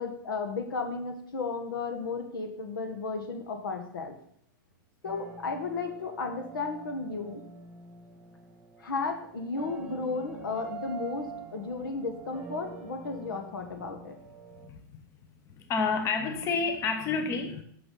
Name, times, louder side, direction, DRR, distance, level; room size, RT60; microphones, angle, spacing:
voice 1, 0.0-4.2 5.0-7.4 8.8-11.3 11.5-14.2, left 4 dB, 85° left, 6 dB, 1.6 m, -34 dB
sound 1, 5.0-14.7, right 5 dB, 15° right, 1.3 m, -46 dB
voice 2, 14.6-15.0 15.4-17.6, left 4 dB, 25° left, 7 dB, 0.8 m, -30 dB
6.1 x 6.0 x 5.6 m, 0.65 s
hypercardioid pair, 140°, 11 cm